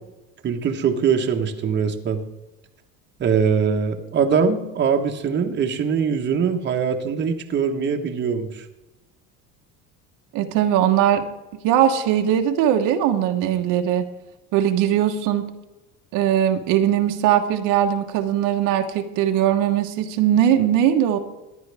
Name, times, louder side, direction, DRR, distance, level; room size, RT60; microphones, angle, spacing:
voice 1, 0.4-2.2 3.2-8.6, right 6 dB, 35° right, 4 dB, 1.2 m, -22 dB
voice 2, 10.3-11.3 11.6-14.1 14.5-15.4 16.1-21.2, right 10 dB, 75° right, 5 dB, 1.2 m, -20 dB
15.0 x 10.5 x 3.5 m, 1.0 s
cardioid pair, 130°, 33 cm